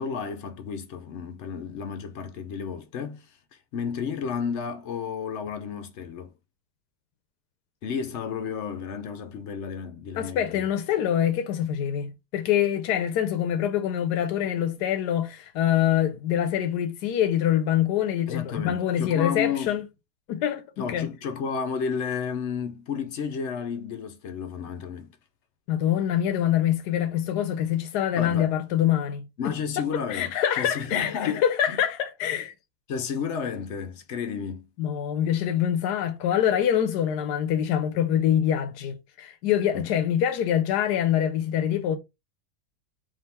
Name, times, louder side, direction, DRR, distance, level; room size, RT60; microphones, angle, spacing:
voice 1, 0.0-3.3 3.7-6.3 7.8-10.6 18.3-19.8 20.8-25.1 28.2-28.5 29.4-31.4 31.7-31.8 32.9-34.7 39.7-39.9, left 6 dB, 60° left, 0.7 m, -32 dB
voice 2, 10.2-19.9 20.3-21.1 25.7-29.8 30.1-32.5 34.8-42.0, left 10 dB, 85° left, 1.2 m, -25 dB
3.6 x 2.7 x 4.2 m
omnidirectional pair, 1.7 m